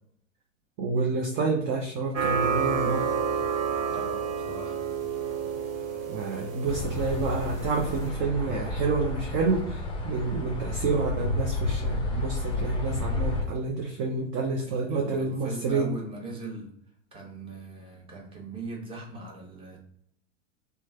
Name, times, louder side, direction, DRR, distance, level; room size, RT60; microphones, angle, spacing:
voice 1, 0.8-3.1 6.1-15.9, right 4 dB, 35° right, 1 dB, 0.5 m, -28 dB
sound 1, 2.1-8.1, right 6 dB, 80° right, 0.8 m, -30 dB
voice 2, 3.9-4.8 14.7-16.7 17.1-19.8, right 3 dB, 15° right, -1 dB, 0.9 m, -40 dB
sound 2, 6.7-13.4, left 2 dB, 15° left, 0.6 m, -31 dB
3.1 x 2.2 x 3.4 m, 0.70 s
hypercardioid pair, 105°, 39 cm